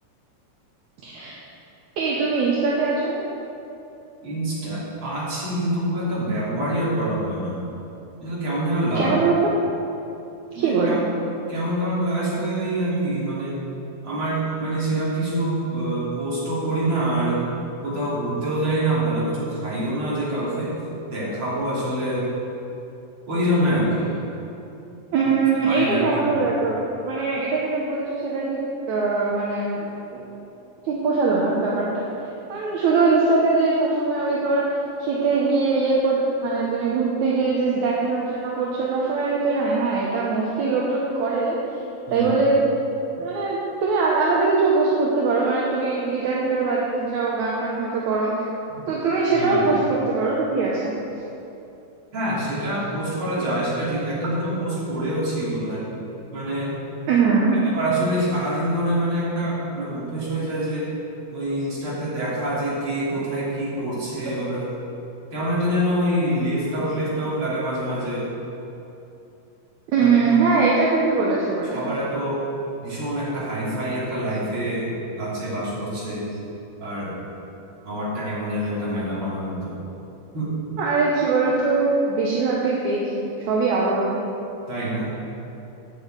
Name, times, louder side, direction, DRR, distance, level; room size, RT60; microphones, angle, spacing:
voice 1, 1.0-1.4 2.0-3.2 9.0-9.3 10.6-11.1 25.1-28.6 28.9-30.2 30.8-32.0 32.5-34.7 35.0-41.6 42.1-42.6 43.2-48.5 48.9-50.9 57.1-57.6 69.9-71.8 80.8-84.2, right 4 dB, 65° right, -4 dB, 2.1 m, -22 dB
voice 2, 4.2-7.7 8.2-9.1 10.5-11.0 11.5-13.6 14.0-22.3 23.3-24.1 25.6-26.4 42.1-42.3 48.7-48.9 49.3-49.7 52.1-55.9 56.3-56.8 57.5-60.9 61.3-64.7 65.3-68.3 70.0-70.2 71.7-72.4 72.8-76.4 76.8-77.2 77.8-79.8 80.3-80.5 84.7-85.1, right 1 dB, 35° right, -8 dB, 3.6 m, -26 dB
9.1 x 7.2 x 8.1 m, 2.8 s
omnidirectional pair, 4.2 m